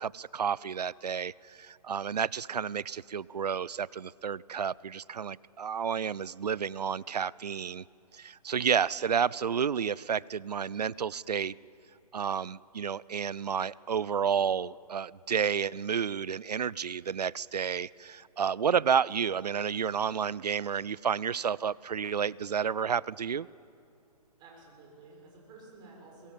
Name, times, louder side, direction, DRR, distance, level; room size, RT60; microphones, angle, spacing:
voice 1, 0.0-7.8 8.1-11.6 12.1-23.5, right 7 dB, 80° right, 23 dB, 0.5 m, -31 dB
voice 2, 24.4-26.3, right 3 dB, 20° right, -2 dB, 6.9 m, -52 dB
22.5 x 20.5 x 8.8 m, 2.6 s
hypercardioid pair, 135°, 20 cm